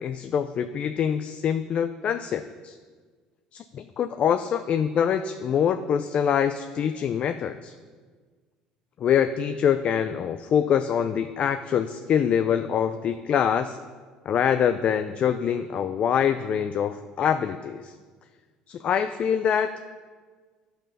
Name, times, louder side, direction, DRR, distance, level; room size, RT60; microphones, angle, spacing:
voice 1, 0.0-2.8 3.5-7.7 9.0-13.8 14.3-17.9 18.7-19.9, left 8 dB, 50° left, 9 dB, 0.4 m, -25 dB
10.5 x 5.8 x 5.4 m, 1.5 s
supercardioid pair, 90°, 3 cm